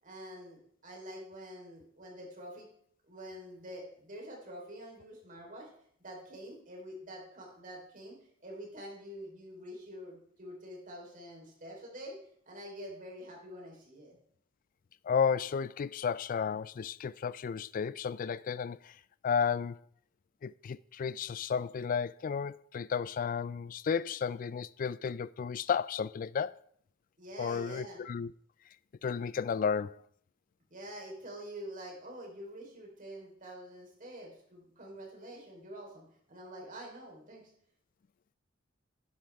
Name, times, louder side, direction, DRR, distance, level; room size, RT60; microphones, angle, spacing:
voice 1, 0.0-2.7 3.1-5.7 6.0-12.2 12.5-14.2 27.2-28.0 30.7-37.4, equal, 40° right, 3.9 m, -46 dB
voice 2, 15.0-19.0 19.2-19.8 20.4-26.6 27.4-28.3 29.0-30.0, left 6 dB, 40° left, 0.3 m, -33 dB
11.5 x 10.5 x 3.5 m
head